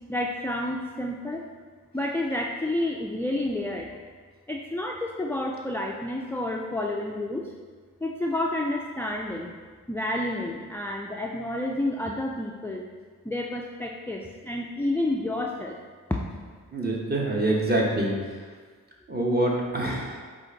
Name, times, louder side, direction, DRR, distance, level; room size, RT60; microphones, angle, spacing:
voice 1, 0.1-1.4 1.9-3.9 4.5-7.5 8.0-9.5 9.9-12.8 13.2-15.8 16.1-16.2, left 1 dB, 5° left, -1 dB, 0.3 m, -30 dB
voice 2, 16.7-18.4 19.1-20.2, right 1 dB, 25° right, -2 dB, 1.0 m, -26 dB
5.0 x 2.5 x 3.9 m, 1.5 s
cardioid pair, 45°, 35 cm